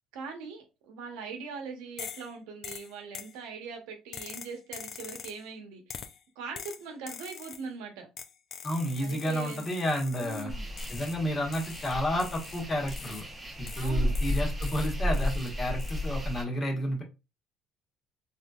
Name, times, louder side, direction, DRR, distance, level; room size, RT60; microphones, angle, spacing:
voice 1, 0.1-6.0 6.4-8.1 9.0-9.7 10.2-10.7 13.8-14.2, right 4 dB, 85° right, 0.8 m, -41 dB
sound 1, 2.0-2.3 2.6-3.4 4.1-5.4 5.9-6.2 6.6-7.7 8.2-10.5 10.8-11.2 11.5-13.3 13.7-15.5 15.8-16.1, left 7 dB, 50° left, 0.4 m, -44 dB
voice 2, 8.6-10.5 10.9-13.2 13.6-17.0, equal, 30° left, 1.2 m, -31 dB
sound 2, 10.5-16.4, left 1 dB, 20° right, 0.7 m, -33 dB
3.6 x 2.7 x 2.3 m
cardioid pair, 100°, 0 cm